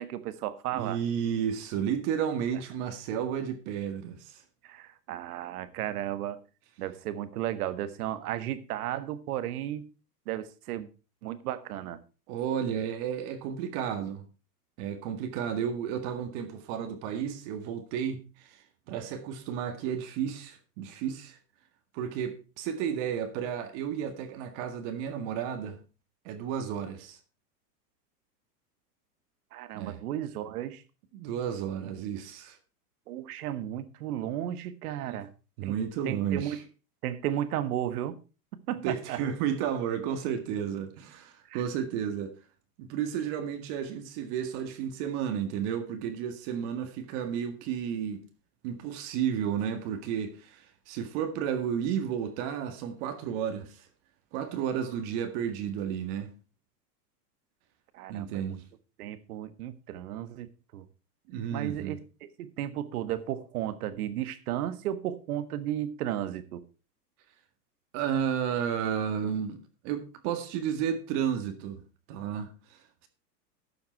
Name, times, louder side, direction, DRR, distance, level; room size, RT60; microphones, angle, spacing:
voice 1, 0.0-1.0 4.6-6.4 6.8-9.9 10.2-10.9 11.2-12.0 29.5-30.8 33.1-35.3 35.6-35.7 36.0-36.6 37.0-38.2 38.7-39.2 41.5-41.6 57.9-58.6 59.0-60.8 61.5-62.0 62.4-66.6, right 12 dB, 65° right, 1.6 m, -34 dB
voice 2, 0.7-4.4 12.3-14.3 14.8-21.4 21.9-25.8 26.3-27.2 29.7-30.0 31.1-32.6 35.0-35.2 35.6-36.6 38.8-42.3 42.8-48.2 48.6-53.9 54.3-56.3 58.1-58.6 61.3-62.0 67.9-69.6 69.8-71.8 72.1-73.1, right 8 dB, 45° right, 1.9 m, -32 dB
12.0 x 7.0 x 4.6 m
supercardioid pair, 135°, 48 cm